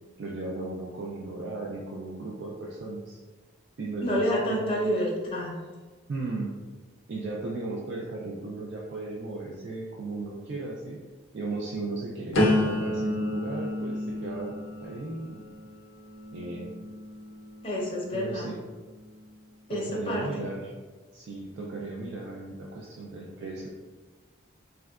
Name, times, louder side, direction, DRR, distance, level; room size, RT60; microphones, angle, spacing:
voice 1, 0.2-3.2 3.8-4.7 6.1-6.6 7.1-11.0 11.3-14.5 14.8-15.4 16.3-16.7 18.1-18.6 19.7-20.7 21.1-23.7, right 2 dB, 55° right, -3 dB, 0.3 m, -36 dB
voice 2, 4.0-5.5 17.6-18.5 19.7-20.4, equal, 25° left, -4 dB, 0.6 m, -28 dB
sound 1, 12.3-18.2 18.7-19.2, left 1 dB, 85° left, 0.5 m, -31 dB
3.6 x 2.2 x 2.3 m, 1.3 s
head